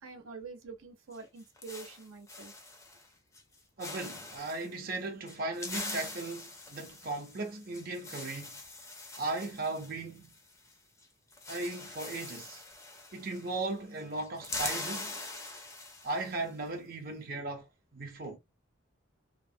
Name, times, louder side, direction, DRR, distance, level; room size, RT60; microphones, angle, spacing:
voice 1, 0.0-2.5 17.3-17.4, right 4 dB, 85° right, 0.7 m, -46 dB
sound 1, 1.1-3.1 3.3-3.5 3.8-4.7 5.3-10.7 11.0-11.1 11.3-13.7 14.0-16.4, left 2 dB, 15° left, 0.5 m, -43 dB
voice 2, 3.8-8.5 9.2-10.3 11.5-12.6 13.1-15.1 16.0-17.7 17.9-18.4, right 2 dB, 45° right, 0.6 m, -37 dB
3.0 x 2.1 x 2.6 m
head